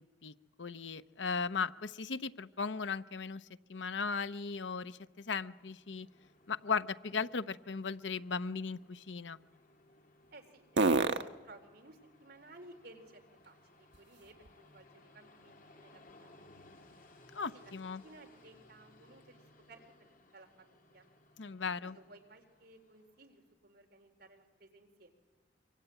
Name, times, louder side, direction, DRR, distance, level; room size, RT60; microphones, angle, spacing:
voice 1, 0.6-6.1 6.5-9.4 17.3-18.0 21.4-22.0, left 5 dB, 80° left, 13 dB, 0.8 m, -37 dB
Train, 4.9-23.4, left 2 dB, 50° left, 2.7 m, -63 dB
sound 1, 5.8-14.8 15.3-19.1, right 3 dB, 80° right, 1.2 m, -40 dB
voice 2, 10.3-16.9 17.4-17.7 18.0-19.4 19.7-21.1 21.7-25.1, right 2 dB, 60° right, 3 dB, 4.0 m, -58 dB
25.0 x 24.5 x 9.2 m, 1.2 s
head